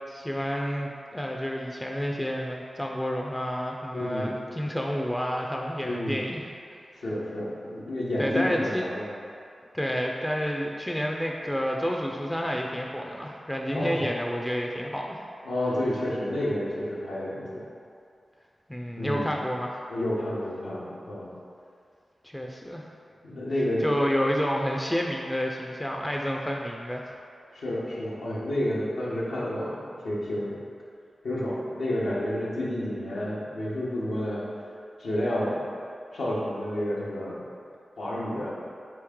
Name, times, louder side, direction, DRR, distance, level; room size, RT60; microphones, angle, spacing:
voice 1, 0.1-6.4 8.2-8.8 9.7-15.2 18.7-19.8 22.2-22.9 23.8-27.1, equal, 10° left, 0 dB, 0.4 m, -29 dB
voice 2, 3.9-4.3 5.8-6.2 7.0-9.1 13.7-14.0 15.4-17.5 19.0-19.4 19.9-21.3 23.2-23.8 27.5-30.6 31.2-34.5 35.0-35.6 36.1-37.4 38.0-38.5, left 1 dB, 90° left, -7 dB, 0.9 m, -30 dB
4.2 x 3.0 x 3.6 m, 2.4 s
cardioid pair, 40°, 0 cm